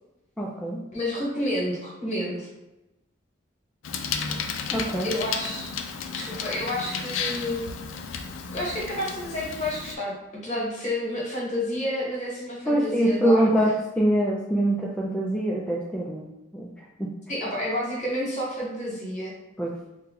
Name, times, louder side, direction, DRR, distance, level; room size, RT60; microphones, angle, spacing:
voice 1, 0.4-0.8 4.7-5.1 12.7-16.3 16.5-16.7 17.0-17.1 19.6-19.7, right 1 dB, 5° left, -4 dB, 0.3 m, -24 dB
voice 2, 0.9-2.5 5.0-5.7 6.1-7.6 8.5-13.5 17.3-19.4, left 1 dB, 40° left, -5 dB, 1.2 m, -30 dB
Bicycle, 3.8-9.9, left 6 dB, 85° left, 0.3 m, -33 dB
2.8 x 2.2 x 3.8 m, 0.95 s
head